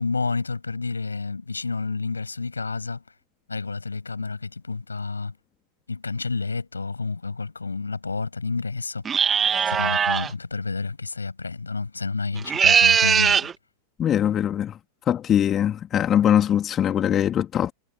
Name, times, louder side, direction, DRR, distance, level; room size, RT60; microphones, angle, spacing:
voice 1, 0.0-3.0 3.5-5.3 5.9-9.3 9.7-13.5, left 4 dB, 80° left, 7.1 m, -30 dB
sound 1, 9.0-10.3 12.4-13.5, right 7 dB, 20° right, 2.4 m, -20 dB
voice 2, 14.0-14.8 15.1-17.7, left 10 dB, 25° left, 3.2 m, -21 dB
figure-of-eight pair, 90°, 0 cm